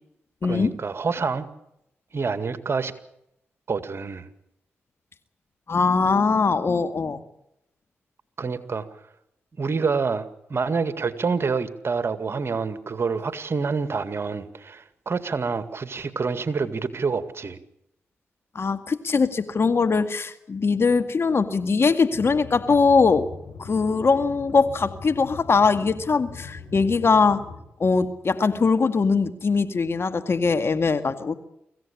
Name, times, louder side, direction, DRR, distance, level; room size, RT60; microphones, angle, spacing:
voice 1, 0.4-1.5 2.1-2.9 3.7-4.3 8.4-8.9 9.6-17.6, right 5 dB, 55° right, 2.0 m, -27 dB
voice 2, 5.7-7.2 18.6-23.3 23.6-27.4 27.8-31.4, left 4 dB, 55° left, 2.0 m, -21 dB
sound 1, 22.1-27.6, left 4 dB, 85° left, 5.7 m, -41 dB
24.5 x 16.0 x 8.6 m
supercardioid pair, 40°, 5 cm